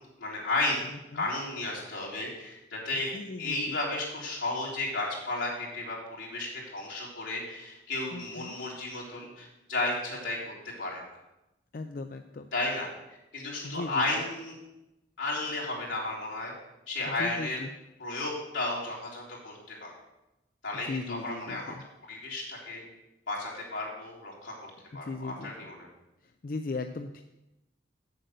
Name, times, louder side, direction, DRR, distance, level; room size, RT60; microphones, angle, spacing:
voice 1, 0.2-0.9 1.1-3.1 3.4-10.4 10.8-11.0 12.5-12.9 13.3-14.5 15.2-16.5 16.9-17.6 18.0-19.9 20.6-21.7 22.1-22.8 23.3-24.5 24.9-25.8, left 2 dB, 80° left, -5 dB, 3.6 m, -33 dB
voice 2, 0.8-1.3 3.1-3.8 8.1-8.7 11.7-12.5 13.6-14.2 17.0-17.7 20.8-21.8 24.9-25.5 26.2-27.2, left 3 dB, 45° left, 7 dB, 0.4 m, -38 dB
7.9 x 7.9 x 6.7 m, 0.93 s
head